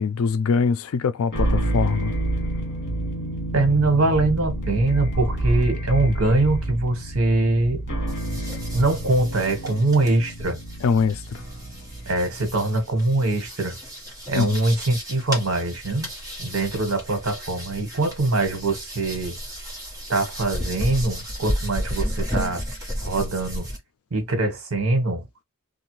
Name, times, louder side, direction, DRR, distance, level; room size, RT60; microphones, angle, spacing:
voice 1, 0.0-2.1 10.8-11.2 14.3-14.6, left 5 dB, 70° left, 0.4 m, -22 dB
sound 1, 1.3-12.7, right 1 dB, 50° left, 1.4 m, -28 dB
voice 2, 3.5-7.8 8.7-10.6 12.1-13.8 14.3-16.1 16.4-19.4 20.1-22.6 23.0-23.7 24.1-25.3, right 2 dB, 70° right, 1.2 m, -23 dB
sound 2, 8.1-23.8, equal, 15° right, 1.1 m, -33 dB
2.7 x 2.3 x 3.0 m
head